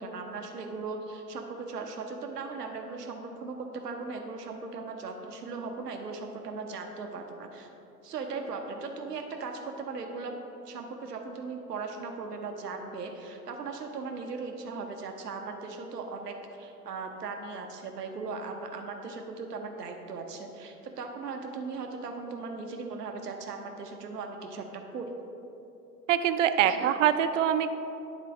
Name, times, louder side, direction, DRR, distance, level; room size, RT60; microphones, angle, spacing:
voice 1, 0.0-7.7 8.0-10.3 10.7-25.1 26.6-26.9, right 4 dB, 80° right, 3 dB, 0.9 m, -38 dB
voice 2, 26.1-27.7, right 10 dB, 55° right, 11 dB, 0.5 m, -24 dB
10.0 x 4.0 x 4.8 m, 2.9 s
figure-of-eight pair, 100°, 47 cm